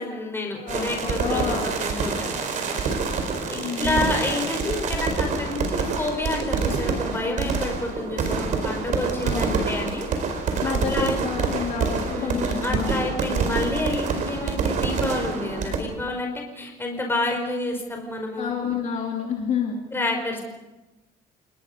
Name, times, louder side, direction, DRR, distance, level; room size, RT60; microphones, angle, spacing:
voice 1, 0.0-2.3 3.5-10.1 10.6-11.2 12.1-18.5 19.9-20.4, left 2 dB, 15° left, 2 dB, 5.1 m, -29 dB
voice 2, 0.6-1.7 3.6-4.1 9.2-9.6 10.6-10.9 11.2-13.0 18.4-19.8, left 6 dB, 45° left, 0 dB, 3.1 m, -29 dB
sound 1, 0.7-15.8, right 4 dB, 50° right, 4.3 m, -26 dB
29.0 x 20.0 x 5.4 m, 1.1 s
cardioid pair, 160°, 17 cm